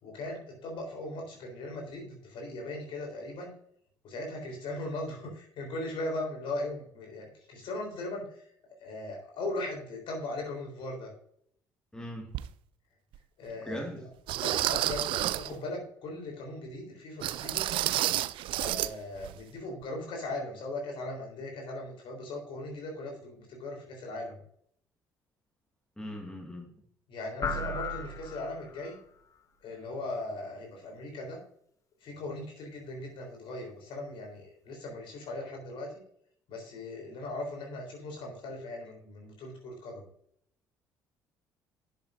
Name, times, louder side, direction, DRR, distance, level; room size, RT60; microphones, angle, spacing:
voice 1, 0.0-3.5 4.0-8.5 8.8-11.1 13.4-14.1 14.3-17.7 18.6-24.4 27.1-29.0 29.6-31.4 32.0-36.0 36.5-40.0, left 2 dB, 60° left, 1 dB, 3.9 m, -39 dB
voice 2, 11.9-12.3 13.7-14.1 26.0-26.7, equal, 5° left, 2 dB, 1.9 m, -39 dB
sound 1, 12.3-12.5 13.1-13.2 14.3-15.5 17.2-18.9 19.2-19.4 19.8-19.9, right 14 dB, 60° right, 0.4 m, -30 dB
sound 2, 27.4-29.0, left 3 dB, 35° left, 1.5 m, -35 dB
10.5 x 8.2 x 2.6 m, 0.66 s
hypercardioid pair, 55°, 10 cm